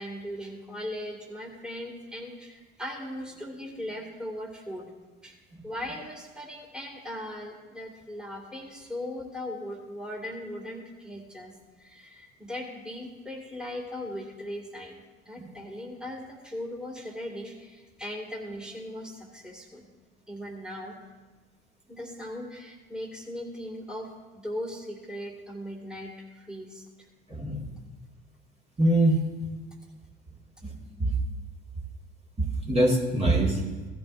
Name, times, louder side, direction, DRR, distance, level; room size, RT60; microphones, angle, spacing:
voice 1, 0.0-4.9 5.2-5.4 5.6-15.0 15.3-19.8 20.3-21.0 21.9-26.9 27.4-27.5, left 1 dB, 5° right, 0 dB, 2.2 m, -38 dB
voice 2, 27.3-27.7 28.8-29.2 31.0-31.2 32.4-33.6, right 1 dB, 20° right, -2 dB, 2.1 m, -23 dB
16.5 x 12.0 x 2.6 m, 1.3 s
hypercardioid pair, 65°, 31 cm